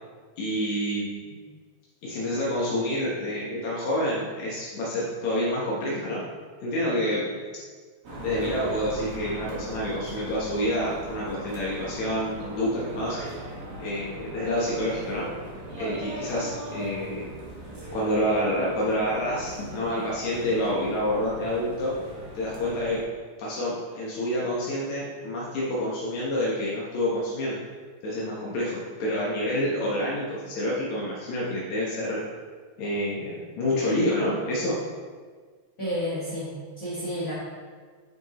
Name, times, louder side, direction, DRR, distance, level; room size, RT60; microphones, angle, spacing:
voice 1, 0.4-1.4 2.0-6.2 6.6-7.4 8.2-13.2 13.8-15.3 15.8-17.3 17.9-21.9 22.4-23.0 23.4-27.6 28.0-32.2 32.8-34.8, left 1 dB, 75° left, -6 dB, 2.4 m, -28 dB
sound 1, 8.0-23.0, equal, 45° right, 1.3 m, -39 dB
voice 2, 35.8-37.3, equal, 40° left, -8 dB, 1.4 m, -31 dB
9.3 x 5.2 x 3.0 m, 1.6 s
omnidirectional pair, 3.4 m